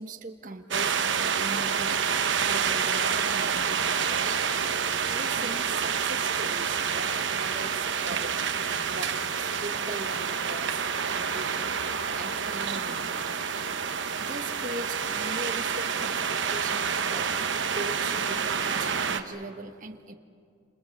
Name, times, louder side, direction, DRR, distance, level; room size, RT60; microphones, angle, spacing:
voice 1, 0.0-2.0 2.4-4.4 5.1-8.4 8.9-11.8 12.2-13.5 14.2-20.1, right 2 dB, 40° right, 5 dB, 1.2 m, -40 dB
sound 1, 0.7-19.2, right 6 dB, 75° right, 1.1 m, -28 dB
29.0 x 27.0 x 7.2 m, 2.4 s
head